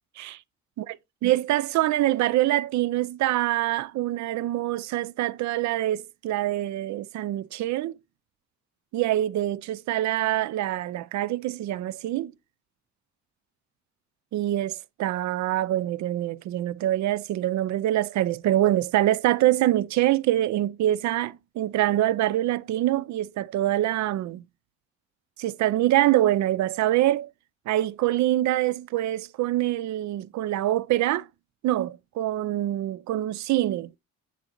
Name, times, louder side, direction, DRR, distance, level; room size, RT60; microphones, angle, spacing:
voice 1, 1.2-7.9 8.9-12.3 14.3-24.4 25.4-27.3 27.7-31.3 31.6-34.0, right 14 dB, 70° right, 0.4 m, -25 dB
9.3 x 3.9 x 2.9 m
cardioid pair, 90°, 30 cm